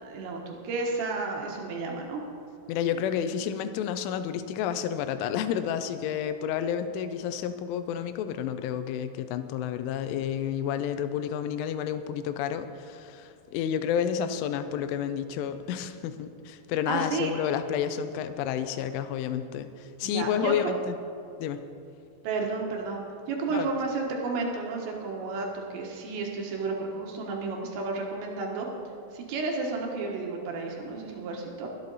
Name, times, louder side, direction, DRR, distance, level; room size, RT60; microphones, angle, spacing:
voice 1, 0.0-2.2 16.9-17.3 20.0-20.7 22.2-23.0 23.3-28.7 29.1-31.7, right 3 dB, 70° right, 0 dB, 3.2 m, -32 dB
voice 2, 2.7-21.0 21.4-21.6 23.5-23.7, left 9 dB, 80° left, 10 dB, 2.9 m, -30 dB
23.0 x 8.5 x 4.1 m, 2.6 s
omnidirectional pair, 6.0 m